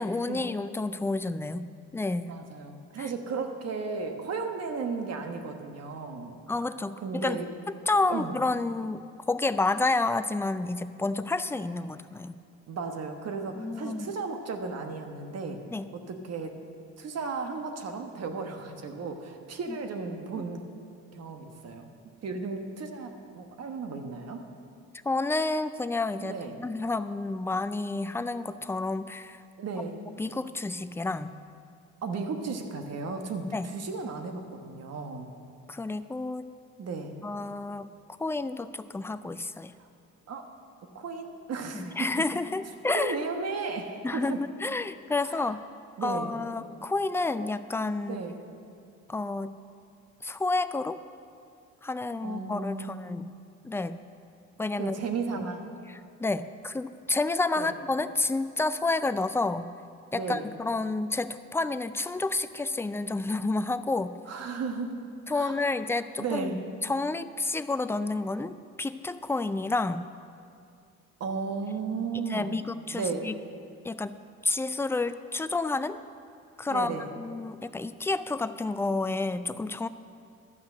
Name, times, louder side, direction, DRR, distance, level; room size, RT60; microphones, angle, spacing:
voice 1, 0.0-2.3 3.0-3.1 6.5-7.4 7.7-12.4 13.6-14.1 15.7-15.8 19.7-19.8 25.0-29.4 30.2-31.3 33.5-33.7 35.7-36.5 37.2-37.9 38.2-39.7 41.7-43.2 44.0-44.3 44.6-45.6 46.0-48.2 49.1-49.5 50.2-51.0 51.8-53.3 53.6-54.0 54.6-54.9 55.3-55.4 55.9-59.7 60.1-64.2 65.3-66.5 66.8-70.1 72.1-73.4 73.8-74.1 74.4-76.0 76.6-79.9, left 3 dB, 10° left, 12 dB, 0.3 m, -30 dB
voice 2, 2.2-6.4 7.0-7.5 8.1-8.3 12.7-15.6 15.9-16.5 17.0-20.6 21.1-21.9 22.2-24.4 26.2-26.6 29.6-30.0 32.0-35.3 36.8-37.2 40.3-40.5 40.9-41.9 42.9-44.4 45.2-45.5 46.0-46.3 48.0-48.4 52.2-53.2 54.8-55.7 57.6-57.7 60.1-60.5 64.3-65.0 65.3-65.7 66.2-66.6 71.2-72.6 72.9-73.3 76.7-77.1, right 4 dB, 55° right, 5 dB, 1.3 m, -35 dB
12.0 x 5.8 x 7.7 m, 2.4 s
cardioid pair, 90°, 30 cm